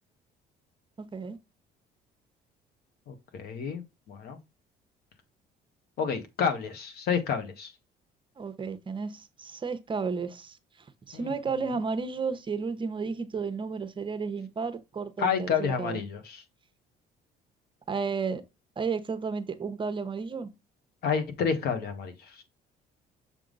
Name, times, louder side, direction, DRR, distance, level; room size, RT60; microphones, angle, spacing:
voice 1, 1.0-1.4 8.4-10.6 11.1-16.0 17.9-18.4 18.8-20.5, right 5 dB, 30° right, 0.8 m, -32 dB
voice 2, 3.1-4.4 6.0-7.7 11.1-11.3 15.2-16.4 21.0-22.1 22.4-22.5, left 6 dB, 70° left, 1.4 m, -29 dB
6.8 x 3.6 x 3.9 m
cardioid pair, 110°, 17 cm